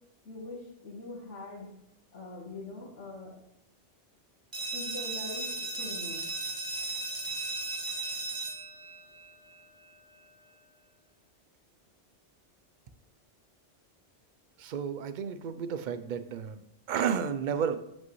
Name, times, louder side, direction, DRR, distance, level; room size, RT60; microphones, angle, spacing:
voice 1, 0.3-1.7 2.1-3.4 4.7-6.3, left 2 dB, 80° left, -6 dB, 1.7 m, -43 dB
sound 1, 4.5-10.0, right 3 dB, 20° right, 0.7 m, -36 dB
voice 2, 14.6-17.8, right 7 dB, 60° right, 11 dB, 0.5 m, -32 dB
8.1 x 5.4 x 3.0 m, 0.80 s
omnidirectional pair, 1.2 m